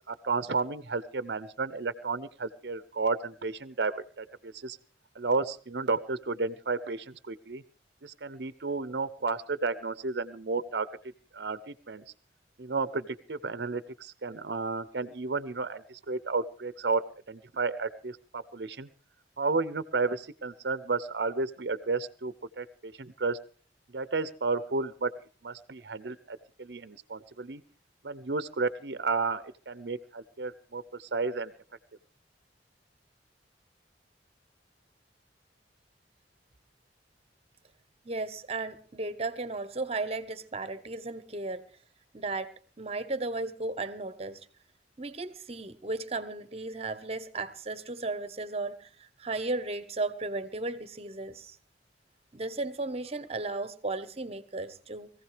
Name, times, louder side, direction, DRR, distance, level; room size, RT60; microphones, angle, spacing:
voice 1, 0.1-4.8 5.1-7.6 8.0-10.9 11.3-12.0 12.6-17.0 17.3-18.9 19.4-23.4 23.9-25.1 25.4-27.6 28.0-31.5, right 4 dB, 65° right, 0.7 m, -32 dB
voice 2, 38.0-41.7 42.1-42.5 42.8-44.4 45.0-51.6 52.3-55.1, right 3 dB, 35° right, 1.1 m, -35 dB
21.5 x 15.5 x 3.3 m
head